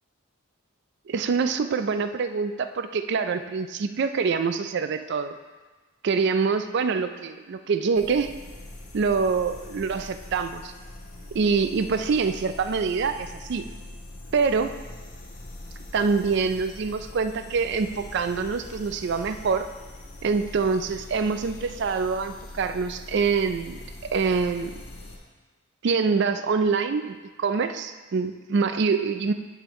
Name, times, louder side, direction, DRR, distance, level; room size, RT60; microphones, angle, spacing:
voice 1, 1.1-5.4 6.0-8.3 8.9-10.7 11.3-13.7 14.3-14.7 15.9-19.7 20.2-23.8 24.1-24.7 25.8-29.3, right 5 dB, 50° right, 9 dB, 0.3 m, -25 dB
sound 1, 7.9-25.2, left 1 dB, 80° left, 1.3 m, -42 dB
11.0 x 4.8 x 3.1 m, 1.3 s
head